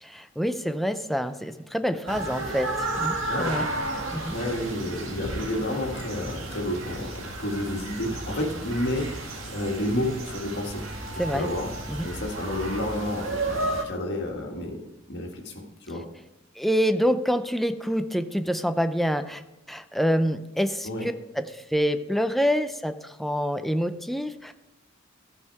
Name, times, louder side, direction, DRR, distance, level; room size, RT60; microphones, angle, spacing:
voice 1, 0.0-3.7 4.1-4.3 11.2-11.5 11.9-12.1 16.6-19.4 19.7-24.5, equal, ahead, 9 dB, 0.5 m, -27 dB
dog howl in woods, 2.1-13.8, right 2 dB, 80° right, 1.7 m, -33 dB
voice 2, 4.3-10.9 11.2-11.7 12.0-14.8 15.1-15.5 15.8-16.0 20.8-21.1, left 1 dB, 60° left, 1 dB, 1.8 m, -30 dB
13.5 x 5.6 x 4.7 m, 0.92 s
head